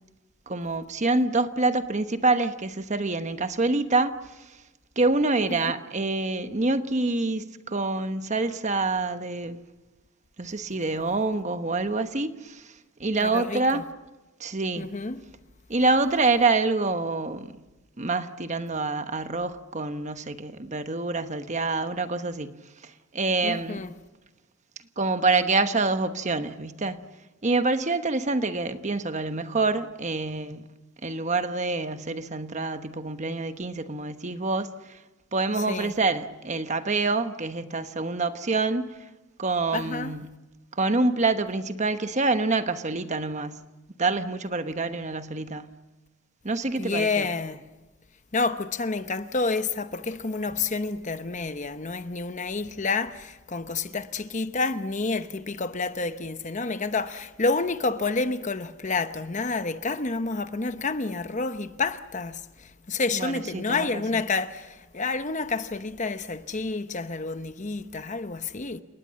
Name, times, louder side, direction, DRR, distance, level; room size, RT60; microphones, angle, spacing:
voice 1, 0.5-4.1 5.0-9.6 10.4-12.7 13.0-13.8 14.4-14.9 15.7-17.5 18.0-22.5 23.1-23.8 25.0-27.0 27.4-30.6 31.0-35.0 35.3-38.9 39.4-40.2 40.8-43.6 44.0-45.7 46.4-47.3 63.1-64.2, right 3 dB, 35° right, 1.1 m, -26 dB
voice 2, 13.2-13.8 14.8-15.2 23.4-23.9 35.7-35.9 39.7-40.1 46.8-47.6 48.3-68.8, left 3 dB, 35° left, 0.9 m, -29 dB
30.0 x 19.0 x 7.5 m
head